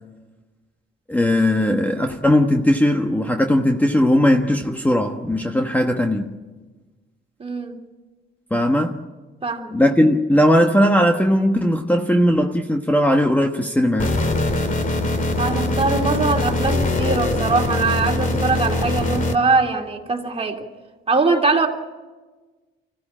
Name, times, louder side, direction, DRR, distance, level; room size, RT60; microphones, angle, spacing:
voice 1, 1.1-6.4 8.5-9.0 9.7-14.2, left 1 dB, 10° left, 1.3 m, -18 dB
voice 2, 7.4-7.8 9.4-9.8 15.4-20.7 21.1-21.7, right 3 dB, 30° right, 2.8 m, -21 dB
sound 1, 14.0-19.3, left 1 dB, 40° left, 2.5 m, -22 dB
25.0 x 16.0 x 8.7 m
cardioid pair, 90°, 20 cm